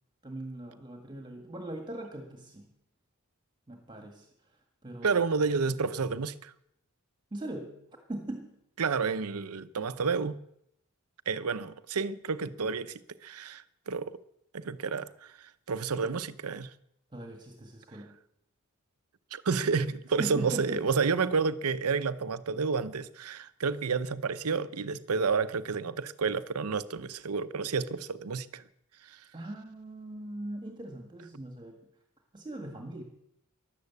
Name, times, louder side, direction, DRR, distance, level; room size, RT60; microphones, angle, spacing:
voice 1, 0.2-2.7 3.7-4.3 4.8-5.2 7.3-7.8 8.1-8.5 17.1-18.1 20.2-20.8 29.3-31.8 32.3-33.0, right 1 dB, 20° right, 1.7 m, -40 dB
voice 2, 5.0-6.5 8.8-10.4 11.3-14.2 14.5-15.3 15.7-16.7 19.3-28.6 29.1-29.2, right 5 dB, 85° right, 0.7 m, -30 dB
13.5 x 11.5 x 8.3 m
head